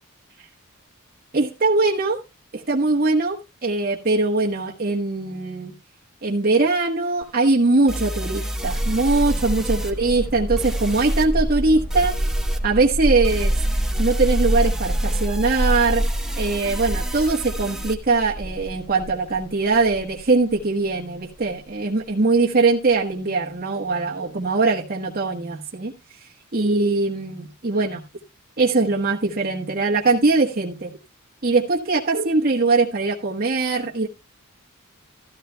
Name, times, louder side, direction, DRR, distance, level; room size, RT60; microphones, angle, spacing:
voice 1, 1.3-2.2 2.5-5.7 6.2-12.1 12.6-13.5 14.0-16.0 16.4-25.9 26.5-28.0 28.6-30.9 31.4-34.1, right 3 dB, 45° right, -2 dB, 1.1 m, -21 dB
sound 1, 7.2-7.3 7.9-9.9 10.6-11.3 11.9-12.6 13.2-17.9, right 1 dB, ahead, 1.0 m, -32 dB
sound 2, 8.6-20.6 20.9-21.0 21.4-21.5, right 1 dB, 35° left, 6.5 m, -26 dB
13.5 x 13.0 x 2.2 m, 0.26 s
head